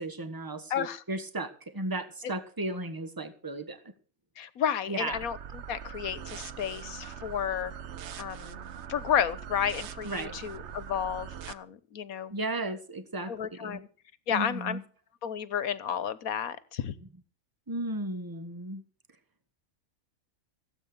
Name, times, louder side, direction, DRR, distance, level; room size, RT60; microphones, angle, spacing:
voice 1, 0.0-3.8 4.9-5.2 10.0-10.3 12.3-13.8 14.3-14.8 17.7-18.8, right 2 dB, 15° right, 11 dB, 1.4 m, -35 dB
voice 2, 0.7-1.0 4.4-7.7 8.2-8.6 8.9-12.3 13.3-13.9 14.3-14.8 15.2-16.9, left 8 dB, 80° left, 16 dB, 1.5 m, -32 dB
sound 1, 5.1-11.5, right 8 dB, 60° right, 1.1 m, -42 dB
16.5 x 8.7 x 6.9 m, 0.41 s
omnidirectional pair, 1.5 m